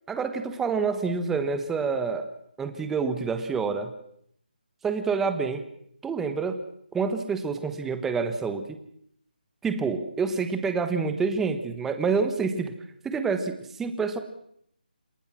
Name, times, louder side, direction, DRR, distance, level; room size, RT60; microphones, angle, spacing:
voice 1, 0.1-2.3 2.6-3.9 4.8-5.6 6.0-6.6 6.9-8.8 9.6-12.7 13.0-14.2, right 5 dB, 5° right, 9 dB, 1.2 m, -27 dB
28.0 x 18.5 x 6.2 m, 0.68 s
figure-of-eight pair, 165°, 5 cm